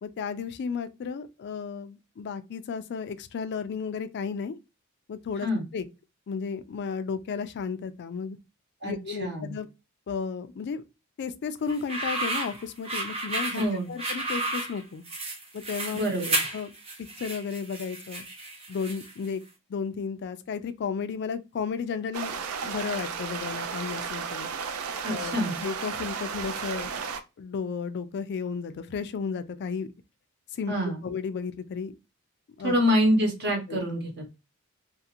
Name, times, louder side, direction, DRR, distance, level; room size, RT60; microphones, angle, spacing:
voice 1, 0.0-4.6 5.1-5.5 5.7-5.9 6.3-8.4 8.8-9.7 10.1-10.8 11.2-15.0 15.5-16.1 16.5-16.7 17.2-18.2 18.7-19.4 19.7-24.5 25.1-29.9 30.5-30.7 31.0-32.0 32.6-32.8 33.7-33.8, left 5 dB, 50° left, 0.3 m, -33 dB
voice 2, 8.8-9.6 13.5-13.9 15.9-16.4 25.0-25.5 30.7-31.1 32.6-34.4, equal, 50° right, 1.0 m, -26 dB
sound 1, 11.7-19.3, right 2 dB, 25° right, 0.7 m, -32 dB
sound 2, 22.1-27.2, right 6 dB, 70° right, 0.4 m, -34 dB
2.5 x 2.4 x 2.7 m
head